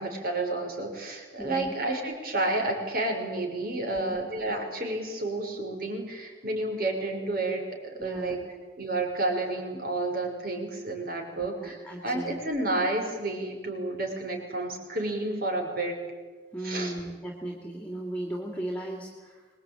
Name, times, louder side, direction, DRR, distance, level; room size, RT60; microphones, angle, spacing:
voice 1, 0.0-8.4 8.8-16.0 16.6-16.9, right 2 dB, 50° right, 2 dB, 6.1 m, -30 dB
voice 2, 1.4-1.7 3.9-4.2 8.0-8.4 11.4-12.4 16.5-19.5, right 1 dB, 5° left, 1 dB, 2.7 m, -36 dB
26.0 x 21.5 x 9.2 m, 1.4 s
head